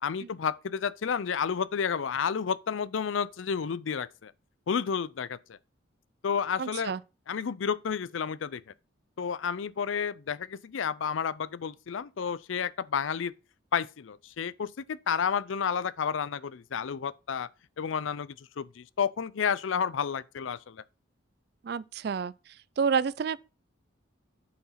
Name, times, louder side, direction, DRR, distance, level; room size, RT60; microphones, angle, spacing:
voice 1, 0.0-4.3 4.7-5.6 6.2-6.9 7.3-8.6 9.2-13.3 13.7-17.5 17.8-20.8, left 7 dB, 80° left, 0.5 m, -31 dB
voice 2, 6.6-7.0 21.6-22.3 22.8-23.4, right 6 dB, 55° right, 0.3 m, -29 dB
8.4 x 4.8 x 5.7 m
head